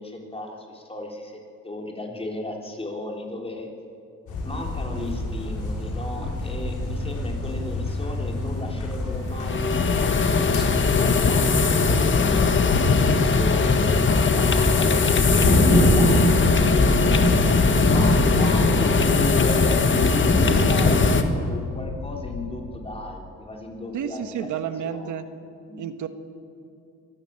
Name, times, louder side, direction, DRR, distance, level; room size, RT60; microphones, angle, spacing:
voice 1, 0.0-3.7 4.4-10.4 10.9-17.2 17.8-24.5 24.8-25.1 25.7-25.8, left 1 dB, 20° left, 1 dB, 3.7 m, -35 dB
sound 1, 4.3-21.1, left 1 dB, 75° left, 5.7 m, -24 dB
sound 2, 8.4-22.7, left 4 dB, 60° left, 2.1 m, -37 dB
sound 3, 9.3-21.2, left 4 dB, 40° left, 1.6 m, -21 dB
voice 2, 23.9-25.3 25.8-26.1, right 9 dB, 75° right, 9 dB, 1.4 m, -30 dB
23.5 x 13.5 x 8.8 m, 2.6 s
cardioid pair, 90°, 30 cm